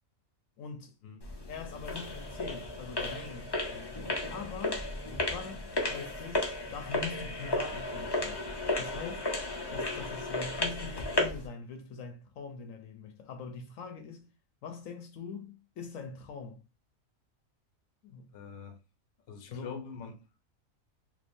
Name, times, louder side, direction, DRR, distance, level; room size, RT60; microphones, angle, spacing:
voice 1, 0.6-1.0 1.5-4.9 5.3-9.3 9.7-14.3 14.6-16.6 18.0-18.3 19.5-19.8, left 5 dB, 75° left, 1.0 m, -43 dB
sound 1, 1.2-11.5, left 2 dB, 30° left, 0.5 m, -34 dB
voice 2, 18.3-18.8 19.3-20.2, left 6 dB, 55° left, 0.9 m, -43 dB
3.4 x 3.3 x 2.6 m
omnidirectional pair, 1.4 m